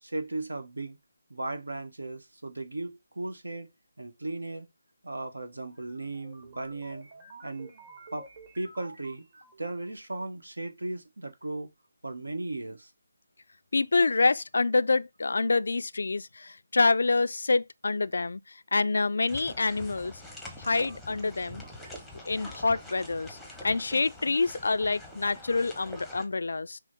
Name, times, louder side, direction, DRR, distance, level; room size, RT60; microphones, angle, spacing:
voice 1, 0.0-1.0 1.3-3.7 4.0-4.7 5.0-7.1 7.4-7.7 8.1-8.3 8.6-9.2 9.6-11.7 12.0-12.9, right 2 dB, 70° right, 1.0 m, -36 dB
sound 1, 5.7-9.9, right 2 dB, 35° right, 1.2 m, -51 dB
voice 2, 13.7-18.4 18.7-20.1 20.6-21.6 22.3-23.4 23.6-26.8, left 3 dB, 60° left, 0.3 m, -26 dB
walkingtocar.soundclip, 19.3-26.2, left 1 dB, ahead, 0.8 m, -45 dB
6.0 x 2.0 x 4.3 m
figure-of-eight pair, 150°, 0 cm